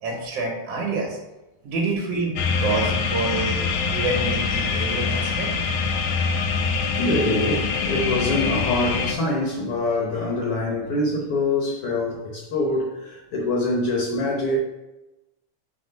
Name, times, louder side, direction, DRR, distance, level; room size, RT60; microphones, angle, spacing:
voice 1, 0.0-1.2 1.6-5.5, right 3 dB, 60° right, -2 dB, 1.9 m, -27 dB
sound 1, 2.4-9.1, left 5 dB, 85° left, 2.1 m, -24 dB
voice 2, 6.9-14.6, left 2 dB, 65° left, -2 dB, 1.5 m, -24 dB
4.8 x 4.1 x 5.1 m, 1.0 s
omnidirectional pair, 3.6 m